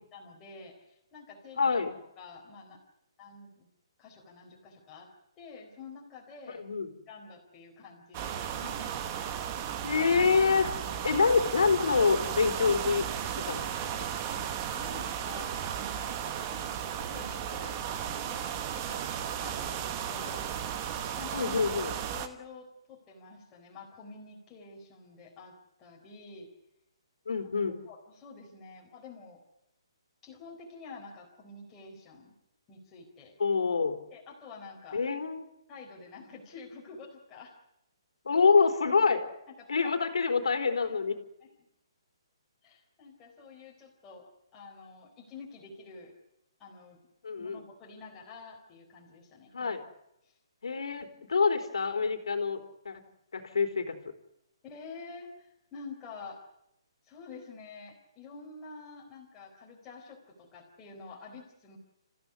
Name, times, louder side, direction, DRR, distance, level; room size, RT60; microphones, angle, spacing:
voice 1, 0.1-1.8 2.2-2.8 3.2-3.7 4.0-5.1 5.4-6.6 7.1-9.4 14.3-14.5 14.7-20.4 21.1-21.6 22.1-26.5 27.9-29.4 30.2-32.3 32.7-33.3 34.1-35.0 35.7-37.5 39.6-39.9 40.5-40.6 41.4-41.5 42.6-46.1 46.6-47.0 47.4-49.7 50.2-50.4 54.6-56.4 57.0-61.8, left 4 dB, 10° left, -2 dB, 4.1 m, -48 dB
voice 2, 1.6-1.9 6.5-7.0 9.8-10.7 11.0-13.1 13.3-14.1 21.3-21.9 27.3-27.8 33.4-34.0 34.9-35.4 38.3-39.2 39.7-41.2 47.2-47.6 49.5-49.8 50.6-53.0 53.3-54.0, left 5 dB, 80° left, 6 dB, 3.7 m, -26 dB
sound 1, 8.1-22.3, right 9 dB, 20° right, 1.2 m, -35 dB
28.5 x 15.0 x 9.6 m, 0.83 s
hypercardioid pair, 175°, 3 cm